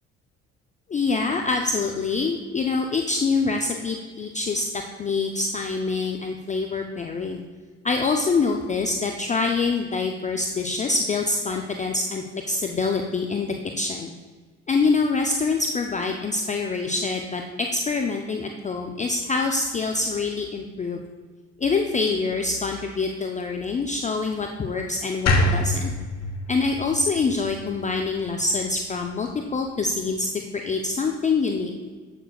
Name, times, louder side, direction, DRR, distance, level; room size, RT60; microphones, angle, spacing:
voice 1, 0.9-4.6 5.0-7.4 7.8-14.1 14.7-21.0 21.6-25.9 26.5-30.3 30.6-31.7, left 4 dB, 20° left, 3 dB, 0.4 m, -25 dB
sound 1, 25.3-28.4, left 2 dB, 50° left, 0.9 m, -25 dB
7.5 x 6.7 x 2.3 m, 1.4 s
hypercardioid pair, 65°, 35 cm